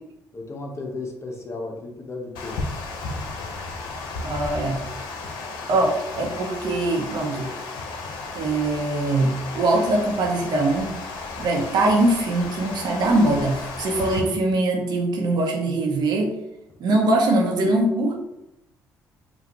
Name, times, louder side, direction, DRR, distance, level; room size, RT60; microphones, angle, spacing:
voice 1, 0.3-2.7, left 3 dB, 35° left, 2 dB, 1.0 m, -34 dB
Water, 2.3-14.2, left 3 dB, 75° left, 0.7 m, -34 dB
voice 2, 4.2-4.8 5.7-7.5 8.3-11.0 11.4-16.3 16.8-18.2, right 2 dB, 65° right, 0 dB, 1.0 m, -22 dB
5.2 x 2.5 x 3.1 m, 0.89 s
supercardioid pair, 60°, 8 cm